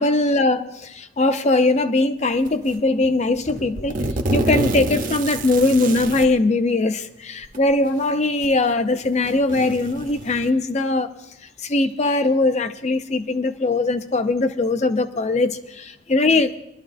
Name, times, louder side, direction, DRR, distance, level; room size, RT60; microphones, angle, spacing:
voice 1, 0.0-4.0 4.3-11.1 11.6-16.6, left 2 dB, 35° left, 9 dB, 0.6 m, -20 dB
sound 1, 2.4-2.8 3.4-6.3 7.4-7.6 8.4-8.5 9.0-10.5, right 1 dB, 45° right, 0.8 m, -27 dB
21.5 x 12.0 x 2.6 m, 0.87 s
head